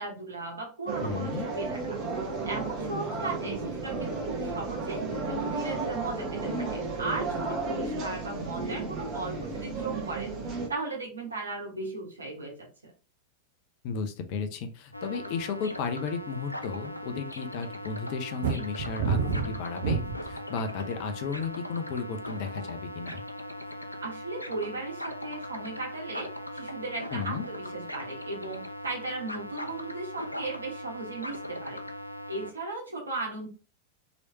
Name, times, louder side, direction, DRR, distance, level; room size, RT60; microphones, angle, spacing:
voice 1, 0.0-2.0 2.4-10.3 10.7-12.7 24.0-31.8 32.3-33.5, right 3 dB, 75° right, 0 dB, 1.2 m, -36 dB
sound 1, 0.9-10.7, right 3 dB, 35° right, 1.0 m, -33 dB
voice 2, 1.0-1.5 13.8-23.2 27.1-27.4, left 5 dB, 45° left, 8 dB, 0.6 m, -34 dB
sound 2, 14.9-32.5, left 1 dB, 85° left, 0.3 m, -39 dB
sound 3, 18.4-20.4 21.0-21.5, right 5 dB, 60° right, 0.5 m, -28 dB
3.1 x 3.0 x 2.8 m, 0.35 s
figure-of-eight pair, 90°, 0 cm